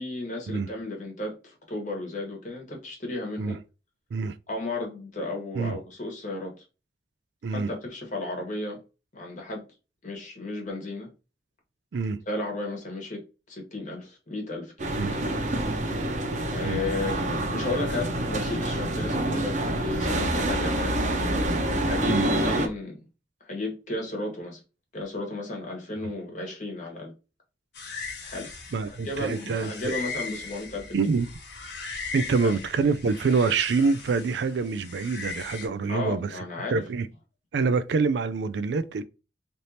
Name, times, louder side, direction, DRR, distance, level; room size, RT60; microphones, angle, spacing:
voice 1, 0.0-3.6 4.5-6.6 7.5-8.8 9.1-9.6 10.0-11.1 12.3-15.0 15.3-15.4 16.5-21.3 21.9-23.0 23.4-24.6 24.9-27.1 28.2-28.5 28.9-31.1 32.4-32.5 35.9-36.8, left 2 dB, 45° left, 1.3 m, -34 dB
sound 1, 14.8-22.7, right 1 dB, 45° right, 0.9 m, -27 dB
sound 2, 27.7-35.7, left 4 dB, 65° left, 1.3 m, -39 dB
voice 2, 28.7-30.0 30.9-31.3 32.1-36.3 36.7-37.1 37.5-39.0, right 4 dB, 65° right, 0.3 m, -26 dB
3.3 x 2.7 x 4.1 m
head